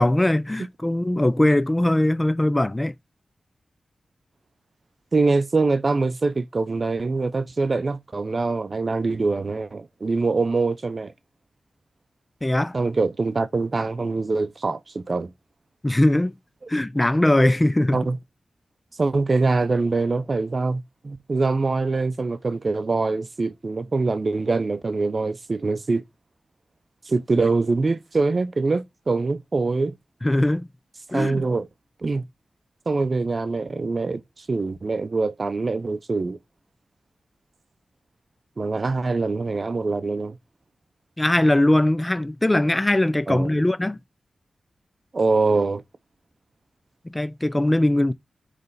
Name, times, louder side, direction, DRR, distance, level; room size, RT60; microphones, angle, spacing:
voice 1, 0.0-2.9 12.4-12.8 15.8-16.3 16.7-18.0 30.2-30.7 31.1-31.5 41.2-44.0 47.0-48.1, left 1 dB, 20° left, 0.5 m, -20 dB
voice 2, 5.1-11.1 12.7-15.3 17.9-18.2 19.0-26.0 27.1-29.9 31.1-31.7 32.0-32.3 32.9-36.4 38.6-40.4 43.3-43.5 45.1-45.8, right 3 dB, 50° right, 0.6 m, -24 dB
9.4 x 3.3 x 4.0 m
cardioid pair, 65°, 0 cm